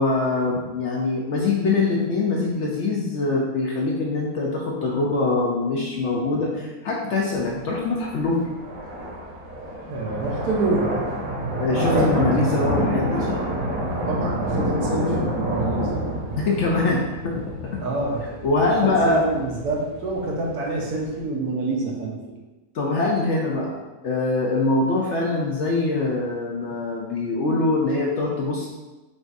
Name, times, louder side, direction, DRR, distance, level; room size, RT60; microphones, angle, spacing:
voice 1, 0.0-8.5 11.6-13.4 16.4-17.7 18.4-19.2 22.7-23.8 24.0-28.7, left 3 dB, 65° left, -2 dB, 0.7 m, -23 dB
sound 1, 7.3-21.2, right 1 dB, 65° right, 1.4 m, -28 dB
voice 2, 9.9-11.0 14.1-16.1 17.8-18.4 18.8-22.2, right 2 dB, 80° right, -1 dB, 1.3 m, -27 dB
6.1 x 2.4 x 2.6 m, 1.1 s
omnidirectional pair, 1.6 m